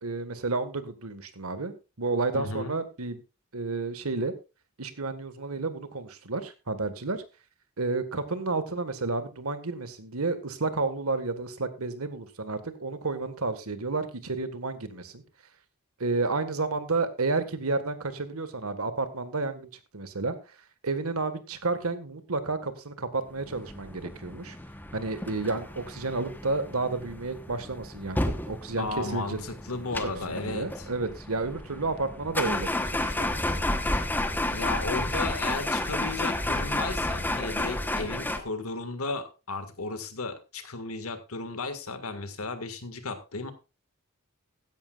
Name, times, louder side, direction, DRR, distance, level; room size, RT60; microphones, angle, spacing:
voice 1, 0.0-3.2 3.5-4.3 4.8-7.2 7.8-15.2 16.0-20.3 20.8-24.6 24.9-29.4 30.0-33.3, right 3 dB, 85° right, 11 dB, 1.6 m, -31 dB
voice 2, 2.3-2.7 28.8-30.9 34.5-43.5, left 3 dB, 80° left, 9 dB, 1.8 m, -34 dB
sound 1, 23.4-38.4, left 1 dB, 10° left, 1.0 m, -31 dB
15.5 x 11.0 x 2.4 m, 0.29 s
head